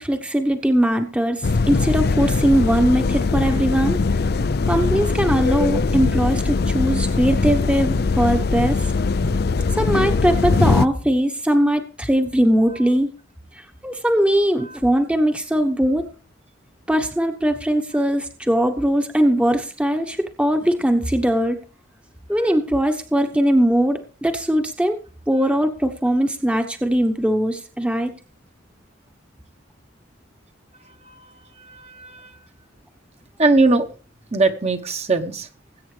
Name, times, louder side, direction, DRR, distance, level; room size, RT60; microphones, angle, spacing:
voice 1, 0.0-4.0 4.7-8.9 9.7-13.1 13.5-16.0 16.9-21.6 22.3-25.0 25.3-28.1, equal, 5° right, 5 dB, 1.1 m, -20 dB
sound 1, 1.4-10.9, left 4 dB, 55° left, 0.5 m, -21 dB
voice 2, 30.8-32.4 33.4-33.9 34.3-35.5, right 3 dB, 35° right, 6 dB, 1.2 m, -22 dB
20.5 x 8.6 x 3.3 m, 0.37 s
head